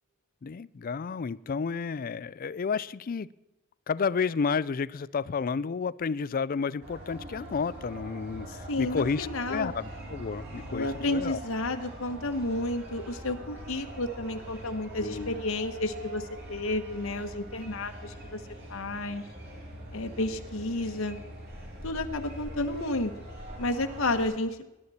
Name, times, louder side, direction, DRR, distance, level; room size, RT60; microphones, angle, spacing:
voice 1, 0.4-3.3 3.9-11.4 15.0-15.4, left 5 dB, 45° left, 19 dB, 0.4 m, -31 dB
sound 1, 6.8-24.2, right 1 dB, 55° right, 5.9 m, -43 dB
voice 2, 8.5-9.7 10.7-18.4 18.7-19.2 19.9-21.2 21.8-23.1 23.6-24.6, left 2 dB, 80° left, 6 dB, 1.2 m, -31 dB
19.5 x 11.0 x 4.2 m, 1.0 s
head